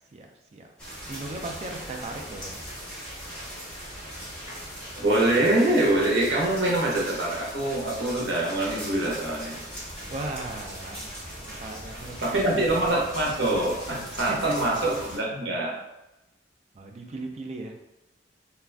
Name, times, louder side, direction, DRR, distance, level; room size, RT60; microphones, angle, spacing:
voice 1, 0.1-2.6 10.1-12.6 14.3-14.6 16.7-17.7, right 2 dB, 35° right, 2 dB, 0.4 m, -37 dB
sound 1, 0.8-15.2, equal, 5° left, 1.2 m, -39 dB
voice 2, 5.0-9.5 12.2-15.7, right 1 dB, 70° right, -3 dB, 0.8 m, -24 dB
2.4 x 2.2 x 3.3 m, 0.95 s
head